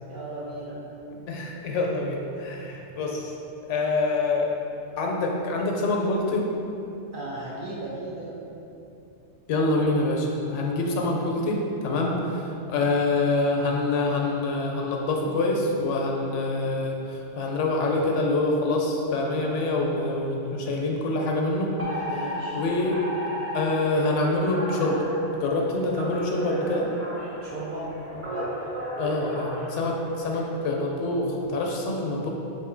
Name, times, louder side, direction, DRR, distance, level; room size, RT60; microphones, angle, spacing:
voice 1, 0.1-0.8 7.1-8.3 11.9-12.2 22.0-22.6 27.4-27.9 28.2-28.5, right 2 dB, 55° right, -5 dB, 0.6 m, -36 dB
voice 2, 1.3-3.3 3.7-4.5 5.0-6.5 9.5-12.2 12.7-23.0 23.5-25.0 25.4-26.9 29.0-32.3, left 2 dB, 75° left, 0 dB, 0.9 m, -26 dB
Alarm, 21.8-30.4, equal, 15° right, 0.6 m, -34 dB
4.2 x 2.6 x 3.7 m, 2.9 s
omnidirectional pair, 1.3 m